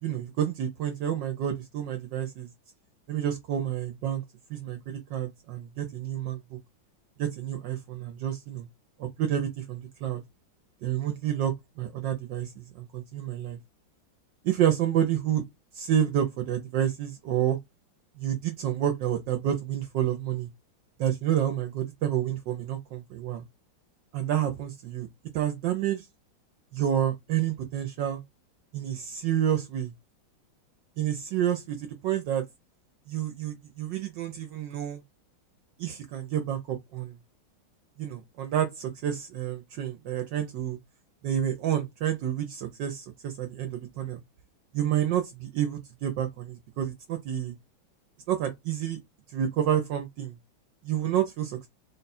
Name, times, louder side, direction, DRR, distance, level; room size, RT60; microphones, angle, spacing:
voice 1, 0.0-2.5 3.1-4.2 4.5-6.6 7.2-8.7 9.0-10.2 10.8-13.6 14.4-15.4 15.7-17.6 18.2-20.5 21.0-23.4 24.1-25.1 25.3-26.1 26.7-28.2 28.7-29.9 31.0-32.4 33.1-35.0 35.8-37.1 38.0-40.8 41.2-44.2 44.7-47.5 48.3-49.0 49.3-50.3 50.8-51.7, right 10 dB, 70° right, 1.2 m, -29 dB
3.8 x 2.2 x 4.1 m
omnidirectional pair, 2.2 m